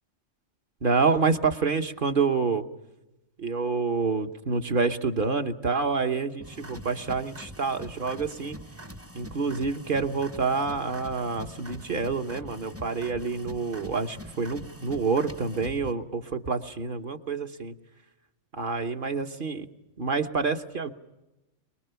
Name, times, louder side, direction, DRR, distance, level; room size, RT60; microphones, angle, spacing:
voice 1, 0.8-2.6 3.4-8.6 9.1-17.7 18.5-19.6 20.0-20.9, right 4 dB, 45° right, 6 dB, 1.2 m, -27 dB
sound 1, 6.4-15.9, equal, 15° right, 0.8 m, -44 dB
24.0 x 22.5 x 6.9 m, 0.98 s
omnidirectional pair, 1.3 m